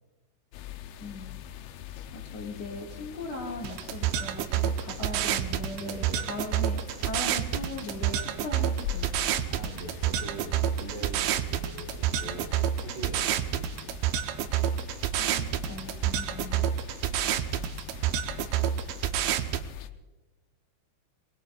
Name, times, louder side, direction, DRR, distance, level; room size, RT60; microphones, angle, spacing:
sound 1, 0.5-19.9, left 10 dB, 85° left, 2.3 m, -43 dB
voice 1, 1.0-1.4 2.1-9.2 15.2-16.6, left 2 dB, 45° left, -2 dB, 2.6 m, -39 dB
sound 2, 3.6-19.6, right 11 dB, 80° right, 2.9 m, -29 dB
voice 2, 5.0-5.5 5.7-6.3 9.5-12.6 12.8-14.0, right 3 dB, 65° right, 1 dB, 4.2 m, -42 dB
24.0 x 20.0 x 2.6 m, 1.1 s
omnidirectional pair, 5.4 m